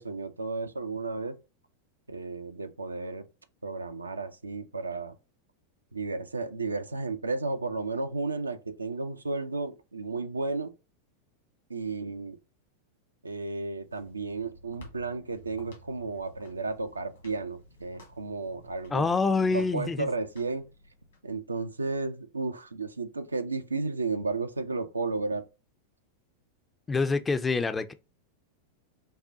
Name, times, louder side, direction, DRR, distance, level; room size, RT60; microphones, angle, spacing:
voice 1, 0.0-1.4 2.1-3.3 3.6-5.2 5.9-10.7 11.7-12.4 13.2-19.1 19.5-20.7 21.2-25.5, right 3 dB, 80° right, 0.4 m, -33 dB
sound 1, 13.7-21.2, equal, 70° left, 1.5 m, -54 dB
voice 2, 18.9-20.1 26.9-27.9, left 4 dB, 15° left, 0.4 m, -26 dB
5.3 x 2.2 x 2.6 m
figure-of-eight pair, 90°, 0 cm